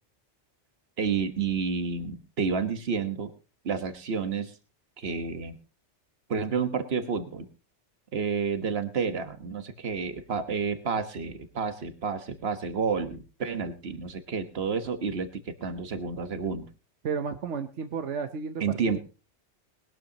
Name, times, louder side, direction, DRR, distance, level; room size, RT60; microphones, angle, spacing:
voice 1, 1.0-3.3 3.6-4.5 5.0-5.6 6.3-7.5 8.1-16.7 18.6-19.0, right 5 dB, 60° right, 9 dB, 1.5 m, -30 dB
voice 2, 17.0-19.0, right 5 dB, 80° right, 7 dB, 1.2 m, -33 dB
20.5 x 12.5 x 2.9 m, 0.33 s
omnidirectional pair, 1.2 m